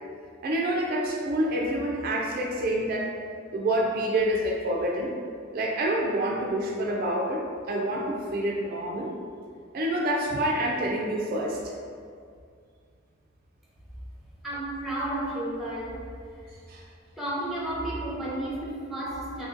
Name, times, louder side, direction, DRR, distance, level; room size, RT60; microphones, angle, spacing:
voice 1, 0.4-3.1 3.5-5.1 5.5-9.2 9.7-11.7 16.7-16.8, right 1 dB, 50° right, -1 dB, 0.3 m, -27 dB
voice 2, 14.4-16.0 17.2-19.5, right 1 dB, ahead, -7 dB, 0.7 m, -32 dB
2.7 x 2.5 x 3.7 m, 2.2 s
head